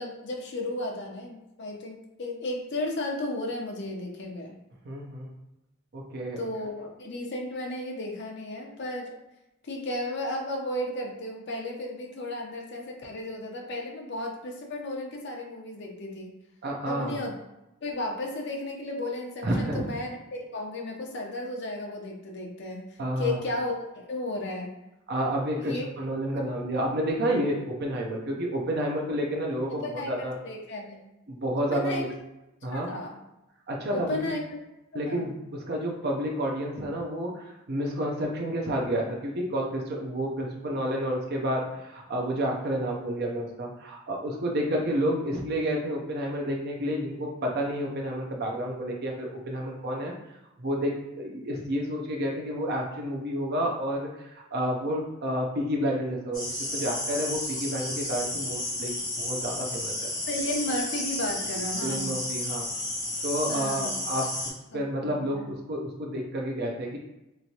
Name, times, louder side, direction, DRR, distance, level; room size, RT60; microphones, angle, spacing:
voice 1, 0.0-4.5 6.4-9.2 9.6-16.4 16.8-17.3 17.8-24.7 25.6-25.8 26.3-26.4 29.7-31.0 31.6-32.1 32.7-33.2 33.9-34.6 35.1-35.3 60.3-62.1 63.5-64.0 64.7-65.5, left 1 dB, 55° left, 1 dB, 0.6 m, -34 dB
voice 2, 4.8-5.3 5.9-6.4 16.6-17.2 19.4-19.8 23.0-23.4 25.1-30.3 31.3-32.1 32.6-32.9 33.7-34.2 34.9-50.1 50.6-54.1 54.5-56.4 56.7-59.9 61.8-62.7 63.2-64.3 64.7-67.0, equal, 50° right, -1 dB, 0.5 m, -30 dB
sound 1, 56.3-64.5, left 1 dB, 20° left, 1.5 m, -32 dB
3.4 x 3.0 x 2.8 m, 0.93 s
head